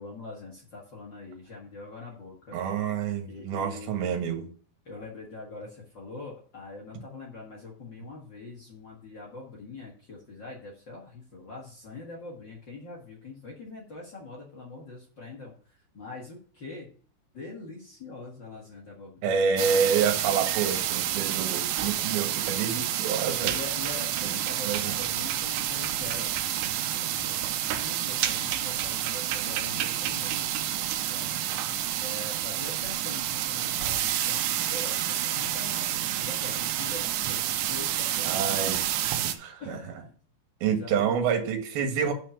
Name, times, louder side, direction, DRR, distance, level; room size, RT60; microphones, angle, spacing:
voice 1, 0.0-2.6 3.3-4.1 4.8-16.9 17.3-19.4 23.4-26.5 26.9-30.6 31.1-31.3 32.0-38.7 39.6-40.0 40.6-41.1, left 3 dB, 60° left, -2 dB, 1.1 m, -43 dB
voice 2, 2.5-4.4 19.2-23.5 24.6-24.9 38.2-38.9 39.2-39.8 40.6-42.1, right 6 dB, 65° right, 3 dB, 3.2 m, -28 dB
sound 1, 19.6-39.3, right 12 dB, 90° right, 2.9 m, -29 dB
6.6 x 6.0 x 7.0 m, 0.44 s
omnidirectional pair, 5.0 m